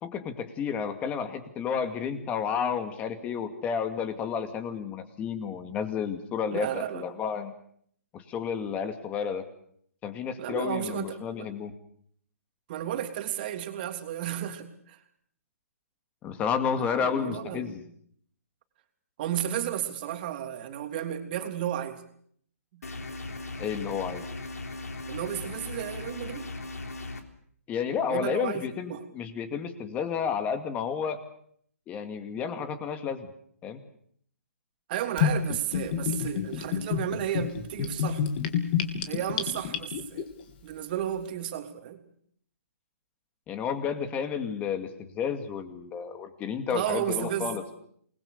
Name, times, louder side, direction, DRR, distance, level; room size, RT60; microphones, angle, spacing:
voice 1, 0.0-7.5 8.1-9.4 10.0-11.7 16.2-17.8 23.6-24.2 27.7-31.2 31.9-33.3 33.6-33.8 43.5-47.6, left 7 dB, 15° left, 9 dB, 2.4 m, -31 dB
voice 2, 6.5-7.1 10.4-11.5 12.7-15.0 16.8-17.8 19.2-22.0 22.7-22.8 25.1-26.5 28.1-29.0 34.9-38.3 39.1-40.2 40.6-42.0 46.7-47.8, right 11 dB, 35° right, 6 dB, 3.2 m, -33 dB
sound 1, 22.8-27.2, left 2 dB, 85° left, 3.6 m, -38 dB
Gurgling / Bathtub (filling or washing), 35.2-40.2, left 9 dB, 40° left, 3.4 m, -28 dB
27.5 x 21.0 x 6.9 m, 0.64 s
hypercardioid pair, 150°, 8 cm